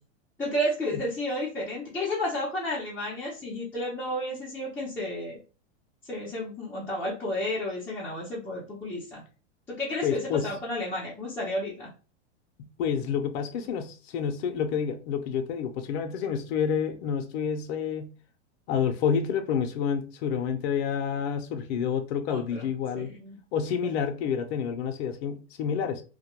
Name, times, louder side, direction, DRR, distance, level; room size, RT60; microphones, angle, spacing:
voice 1, 0.4-5.4 6.0-9.2 9.7-11.9 22.3-22.7 22.9-23.4 23.8-23.9, left 1 dB, 5° left, 0.4 m, -32 dB
voice 2, 10.0-10.5 12.6-18.1 18.7-23.1 23.5-26.0, left 7 dB, 60° left, 0.5 m, -29 dB
2.2 x 2.1 x 2.9 m
supercardioid pair, 140°, 36 cm